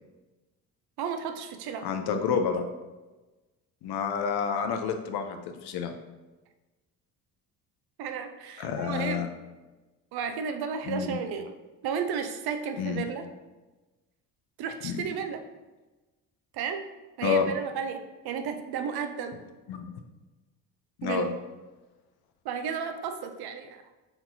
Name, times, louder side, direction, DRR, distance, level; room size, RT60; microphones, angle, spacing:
voice 1, 1.0-1.9 8.0-9.3 10.1-11.5 11.8-13.2 14.6-15.4 16.5-16.9 17.2-18.0 18.2-19.4 21.0-21.3 22.4-23.8, right 6 dB, 55° right, 7 dB, 0.6 m, -33 dB
voice 2, 1.8-2.7 3.8-5.9 8.6-9.3 10.9-11.2 12.8-13.0 14.8-15.0 17.2-17.5 19.7-19.9 21.0-21.3, left 6 dB, 55° left, 6 dB, 0.6 m, -29 dB
4.3 x 4.0 x 2.7 m, 1.2 s
hypercardioid pair, 55°, 46 cm